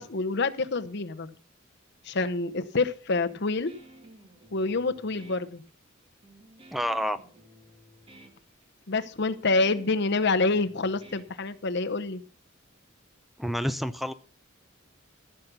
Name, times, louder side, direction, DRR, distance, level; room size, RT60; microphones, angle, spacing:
voice 1, 0.0-1.3 2.0-3.7 4.5-5.6 8.9-12.2, left 3 dB, 60° left, 10 dB, 0.9 m, -27 dB
Guitar, 3.3-11.9, right 1 dB, 25° right, 1.9 m, -54 dB
voice 2, 6.7-7.2 13.4-14.1, equal, ahead, 11 dB, 0.5 m, -28 dB
14.5 x 6.9 x 5.8 m, 0.41 s
head